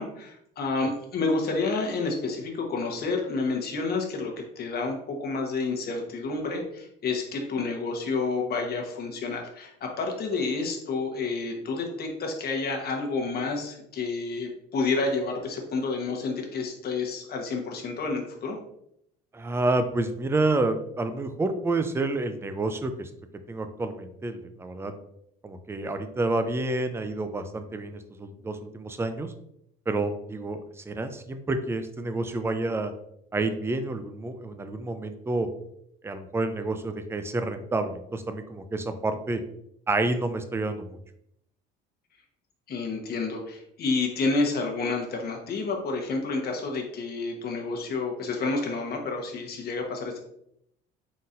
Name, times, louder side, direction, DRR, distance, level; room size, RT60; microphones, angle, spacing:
voice 1, 0.0-18.6 42.7-50.2, left 3 dB, 50° left, 1 dB, 1.1 m, -29 dB
voice 2, 19.3-23.1 23.5-24.9 25.4-29.3 29.9-32.9 33.3-35.5 36.0-39.4 39.9-41.0, right 2 dB, 10° right, 8 dB, 0.4 m, -29 dB
4.1 x 3.8 x 2.5 m, 0.75 s
supercardioid pair, 95°, 21 cm